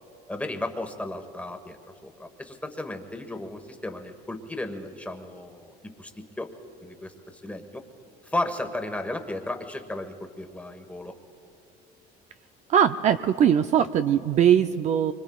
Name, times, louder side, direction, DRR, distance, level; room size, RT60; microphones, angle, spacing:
voice 1, 0.3-6.5 6.8-7.8 8.2-11.1, left 1 dB, 10° left, 5 dB, 1.2 m, -34 dB
voice 2, 12.7-15.1, right 9 dB, 40° right, 9 dB, 0.4 m, -21 dB
25.5 x 24.5 x 2.3 m, 2.5 s
cardioid pair, 120°, 18 cm